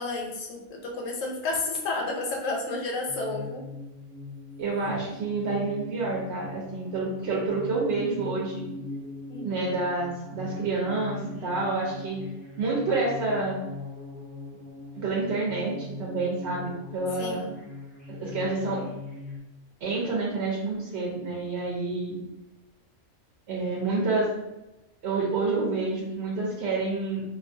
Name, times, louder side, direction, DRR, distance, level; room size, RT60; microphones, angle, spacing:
voice 1, 0.0-3.6 9.3-9.8 17.2-17.6, left 2 dB, 80° left, 0 dB, 1.0 m, -31 dB
sound 1, 3.1-19.4, left 3 dB, 10° right, 0.3 m, -41 dB
voice 2, 4.6-8.7 9.4-12.2 12.6-13.6 14.9-17.4 18.2-18.8 19.8-22.2 23.5-24.3 25.0-27.2, right 3 dB, 60° right, -4 dB, 0.7 m, -28 dB
2.3 x 2.3 x 2.5 m, 0.98 s
omnidirectional pair, 1.3 m